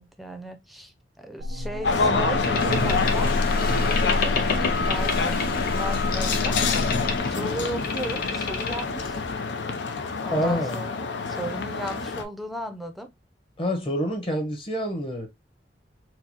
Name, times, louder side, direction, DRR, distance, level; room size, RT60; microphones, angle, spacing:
voice 1, 0.0-3.3 4.0-5.4 5.7-6.6 7.3-9.2 10.2-13.1, right 1 dB, ahead, 0.5 m, -36 dB
sound 1, 1.4-7.2, left 1 dB, 65° right, 0.3 m, -29 dB
sound 2, 1.8-12.2, left 4 dB, 90° left, 0.6 m, -27 dB
Boat Water vehicle, 2.4-9.3, left 4 dB, 55° left, 0.8 m, -30 dB
voice 2, 10.3-10.8 13.6-15.3, equal, 30° left, 1.0 m, -27 dB
4.5 x 2.0 x 2.8 m
head